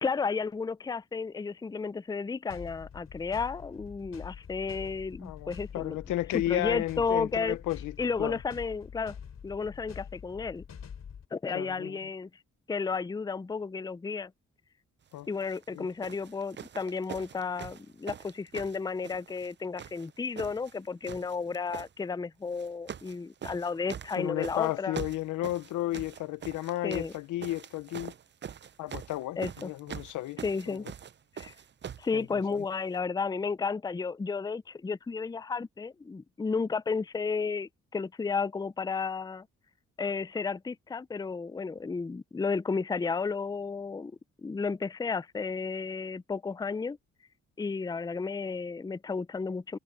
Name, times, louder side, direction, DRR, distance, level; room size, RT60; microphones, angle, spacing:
voice 1, 0.0-6.0 6.3-7.6 8.0-9.2 9.4-10.6 11.3-12.3 12.7-14.3 15.3-25.0 26.8-27.1 29.4-29.7 30.4-30.9 31.4-31.5 32.0-39.5 40.0-44.1 44.4-47.0 47.6-49.8, left 5 dB, 15° left, 0.5 m, -33 dB
sound 1, 2.5-11.3, left 7 dB, 60° left, 3.6 m, -46 dB
voice 2, 5.2-8.4 11.5-12.0 15.1-15.3 15.7-15.9 24.2-28.1 28.8-30.4 30.7-30.8 32.1-32.6, left 15 dB, 90° left, 0.9 m, -33 dB
sound 2, 15.4-15.6 16.0-19.5 19.8-20.8 21.0-21.9 22.5-23.2 23.4-32.1 32.9-33.0, right 8 dB, 35° right, 0.5 m, -43 dB
supercardioid pair, 65°, 30 cm